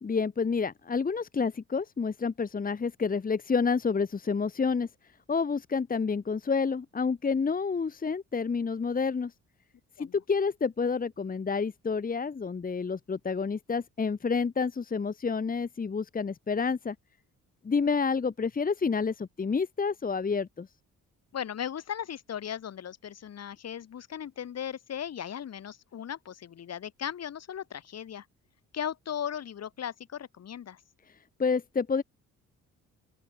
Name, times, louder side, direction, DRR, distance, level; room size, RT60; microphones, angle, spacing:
voice 1, 0.0-4.9 5.3-9.3 10.0-16.9 17.6-20.7 31.4-32.0, left 5 dB, 30° left, 1.5 m, -29 dB
voice 2, 21.3-28.3 28.7-30.8, left 9 dB, 55° left, 2.9 m, -37 dB
open air
cardioid pair, 90°, 30 cm